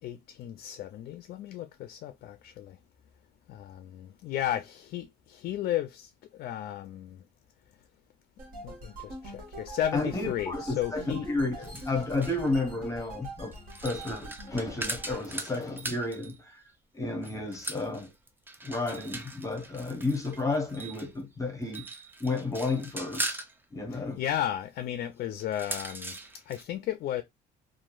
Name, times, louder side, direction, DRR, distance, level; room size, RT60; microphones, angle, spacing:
voice 1, 0.0-2.8 3.5-7.2 8.6-11.3 23.9-27.2, left 12 dB, 60° left, 0.4 m, -34 dB
sound 1, 8.4-15.2, right 1 dB, 55° right, 1.2 m, -44 dB
voice 2, 9.9-13.6 13.8-16.6 16.9-18.1 18.6-21.9 22.2-23.4 23.7-24.2, left 2 dB, 20° left, 0.8 m, -32 dB
sound 2, 11.6-12.5 13.5-16.4 17.2-21.1 21.6-23.5 25.4-26.6, right 2 dB, 10° right, 0.5 m, -39 dB
3.0 x 2.5 x 2.3 m
cardioid pair, 110°, 17 cm